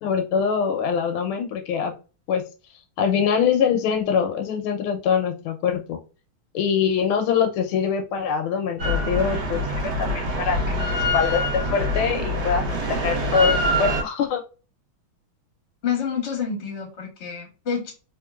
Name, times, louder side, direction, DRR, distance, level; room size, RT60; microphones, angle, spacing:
voice 1, 0.0-1.9 2.3-2.4 3.0-6.0 6.5-14.4, left 7 dB, 80° left, 5 dB, 1.5 m, -24 dB
Drill, 8.8-14.0, left 1 dB, 60° right, 1.5 m, -24 dB
voice 2, 15.8-17.9, left 7 dB, 40° left, 1 dB, 1.2 m, -28 dB
3.6 x 3.2 x 2.3 m, 0.33 s
omnidirectional pair, 2.3 m